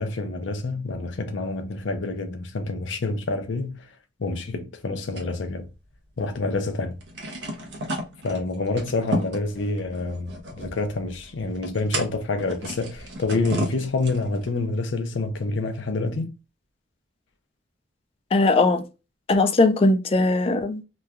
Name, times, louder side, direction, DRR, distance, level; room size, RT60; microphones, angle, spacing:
voice 1, 0.0-3.8 4.2-5.7 6.2-7.0 8.2-10.3 10.6-16.3, left 3 dB, 75° left, 0.6 m, -27 dB
sound 1, 5.2-6.3 6.6-6.7 7.0-14.5, equal, 65° right, 0.8 m, -34 dB
voice 2, 18.3-18.8 19.3-20.8, left 2 dB, 30° left, 0.3 m, -19 dB
3.0 x 2.2 x 2.3 m
head